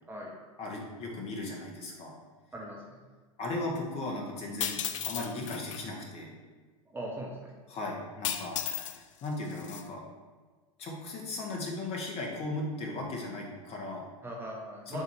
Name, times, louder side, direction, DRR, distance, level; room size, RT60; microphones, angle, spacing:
voice 1, 0.6-2.1 3.4-6.3 7.7-10.0 10.8-14.1 14.9-15.0, left 2 dB, 35° left, -1 dB, 1.3 m, -37 dB
voice 2, 2.5-3.0 6.9-7.5 14.2-15.0, right 1 dB, 10° right, -3 dB, 1.1 m, -40 dB
sound 1, 4.6-5.8 8.2-9.0 9.3-9.8, left 9 dB, 65° left, 0.4 m, -34 dB
7.3 x 2.8 x 4.7 m, 1.4 s
figure-of-eight pair, 85°, 18 cm